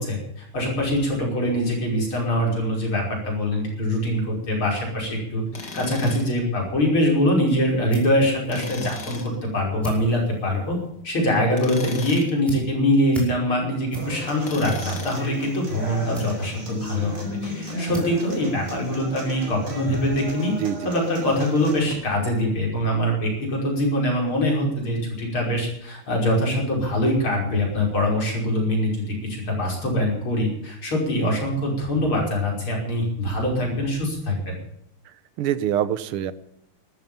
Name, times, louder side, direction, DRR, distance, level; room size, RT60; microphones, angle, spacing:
voice 1, 0.0-10.8 11.0-20.5 20.8-34.6, left 1 dB, 70° left, 0 dB, 6.3 m, -23 dB
Tools, 5.5-6.4 8.5-9.3 11.5-12.4 14.4-15.4, left 3 dB, 50° left, 3.1 m, -37 dB
sound 1, 7.3-19.4, right 1 dB, ahead, 5.2 m, -40 dB
Human voice / Acoustic guitar, 13.9-21.9, equal, 35° right, 6.0 m, -35 dB
voice 2, 20.6-20.9 35.4-36.3, right 10 dB, 80° right, 15 dB, 1.9 m, -25 dB
13.5 x 13.0 x 7.1 m, 0.77 s
omnidirectional pair, 2.4 m